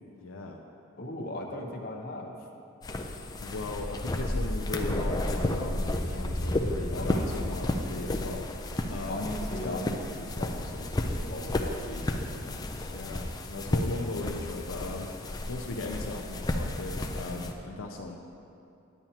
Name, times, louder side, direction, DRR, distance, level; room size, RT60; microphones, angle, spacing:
voice 1, 0.2-0.6 3.4-9.2 9.5-9.8 12.8-18.2, left 2 dB, 75° left, 1 dB, 0.6 m, -38 dB
voice 2, 1.0-2.4 6.9-7.3 9.1-10.0 10.4-12.7 17.3-17.5, left 1 dB, 45° left, 0 dB, 0.9 m, -38 dB
sound 1, 2.8-17.5, left 1 dB, 20° left, 0.4 m, -32 dB
10.5 x 8.9 x 2.9 m, 2.6 s
head